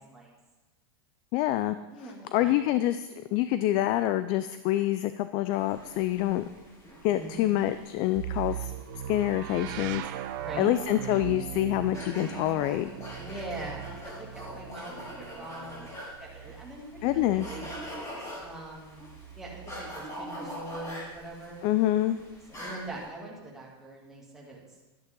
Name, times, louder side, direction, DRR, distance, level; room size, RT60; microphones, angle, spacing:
voice 1, 1.3-1.8 2.0-6.4 7.0-8.7 9.1-10.0 10.6-12.9 17.0-17.5 21.6-22.2, left 14 dB, 40° left, 12 dB, 0.4 m, -26 dB
voice 2, 1.9-2.5 7.1-7.6 10.4-10.7 13.2-15.8 16.2-17.7 18.4-19.1 19.3-21.6 22.6-24.6, right 2 dB, 5° right, -5 dB, 2.6 m, -42 dB
sound 1, 5.5-23.0, equal, 25° left, 4.7 m, -44 dB
sound 2, 8.2-18.0 19.0-20.0, right 11 dB, 55° right, 0.7 m, -39 dB
12.5 x 11.5 x 3.8 m, 1.1 s
supercardioid pair, 155°, 13 cm